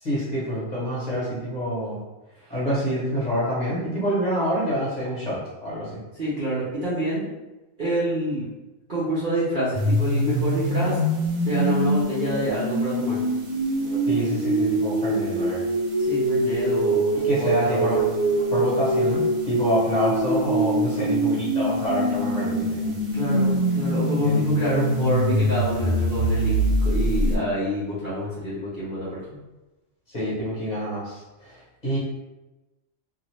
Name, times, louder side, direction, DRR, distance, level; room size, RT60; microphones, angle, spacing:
voice 1, 0.0-2.0 2.5-6.0 14.1-15.6 17.2-18.0 18.5-23.0 24.2-24.6 30.1-32.0, equal, 35° left, -9 dB, 1.2 m, -27 dB
voice 2, 6.2-7.2 7.8-8.5 8.9-11.0 11.5-13.2 16.0-17.1 17.4-17.9 23.1-29.2, equal, 45° right, -9 dB, 0.8 m, -27 dB
sound 1, 9.7-27.4, right 1 dB, 75° right, 1.0 m, -24 dB
2.6 x 2.5 x 3.1 m, 1.1 s
omnidirectional pair, 1.4 m